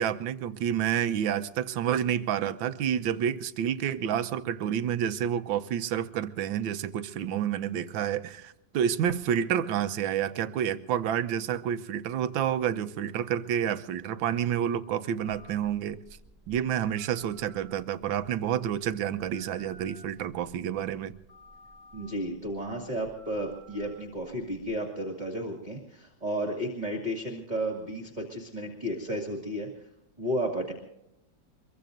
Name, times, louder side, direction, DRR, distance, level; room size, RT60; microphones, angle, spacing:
voice 1, 0.0-16.0 16.5-21.1, right 9 dB, 85° right, 12 dB, 1.5 m, -29 dB
Telephone, 15.2-24.7, right 1 dB, 40° left, 8.3 m, -55 dB
voice 2, 21.9-29.9 30.2-30.7, right 1 dB, 25° right, 1 dB, 2.2 m, -33 dB
24.5 x 22.5 x 2.6 m, 0.86 s
omnidirectional pair, 2.1 m